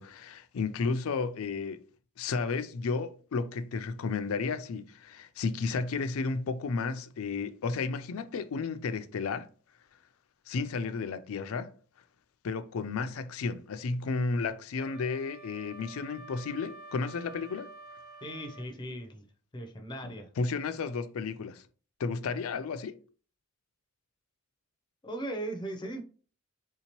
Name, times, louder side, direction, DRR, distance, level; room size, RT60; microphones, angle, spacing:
voice 1, 0.0-1.8 2.2-9.5 10.5-11.7 12.4-17.7 20.0-21.6 22.0-23.0, left 4 dB, 80° left, 0.4 m, -33 dB
Wind instrument woodwind instrument, 14.7-18.7, right 2 dB, 30° right, 1.2 m, -49 dB
voice 2, 18.2-19.3 19.5-20.3 25.0-26.0, right 1 dB, 20° left, 0.5 m, -38 dB
3.6 x 2.8 x 2.9 m
head